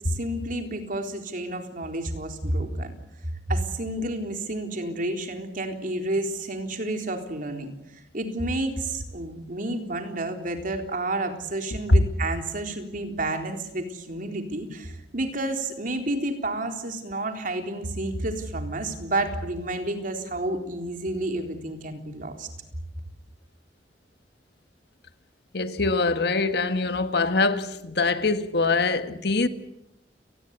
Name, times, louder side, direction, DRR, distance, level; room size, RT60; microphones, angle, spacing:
voice 1, 0.1-2.9 3.5-22.5, right 1 dB, 50° right, 3.9 m, -30 dB
voice 2, 25.5-29.5, left 3 dB, 65° left, 1.8 m, -23 dB
29.5 x 20.0 x 8.3 m
head